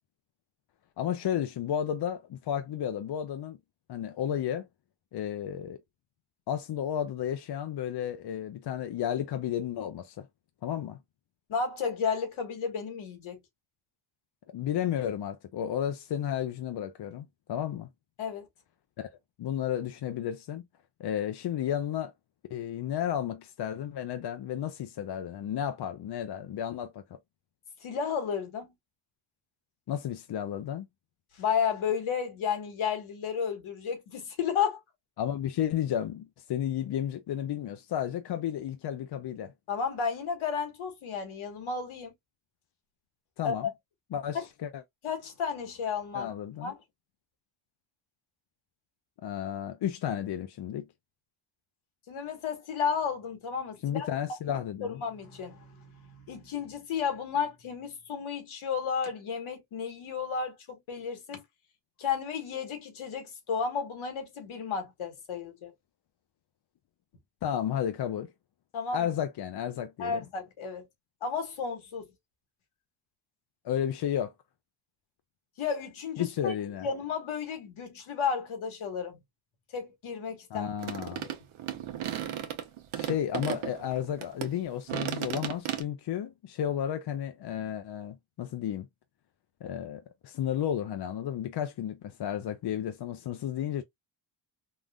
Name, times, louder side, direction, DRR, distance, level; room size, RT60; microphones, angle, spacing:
voice 1, 1.0-3.6 3.9-4.7 5.1-5.8 6.5-10.3 10.6-11.0 14.5-17.9 19.0-19.1 19.4-20.6 21.0-22.1 22.5-27.2 29.9-30.9 35.2-39.5 43.4-43.7 44.1-44.8 46.1-46.7 49.2-50.9 53.8-55.0 67.4-68.3 68.9-70.2 73.6-74.3 76.2-76.9 80.5-81.3 82.9-88.9 89.6-93.8, left 10 dB, 55° left, 0.5 m, -32 dB
voice 2, 11.5-13.4 18.2-18.5 27.8-28.7 31.4-34.8 39.7-42.1 43.4-43.5 44.3-44.4 45.0-46.3 46.6-46.7 52.1-54.1 54.5-61.4 62.0-65.7 68.7-69.1 70.0-70.9 71.2-72.0 75.6-76.5 76.8-79.2 79.7-80.7 81.0-81.3, left 6 dB, 75° left, 1.4 m, -33 dB
sound 1, 80.8-84.5 84.9-85.8, right 11 dB, 75° right, 0.8 m, -35 dB
3.7 x 2.4 x 2.2 m
cardioid pair, 75°, 49 cm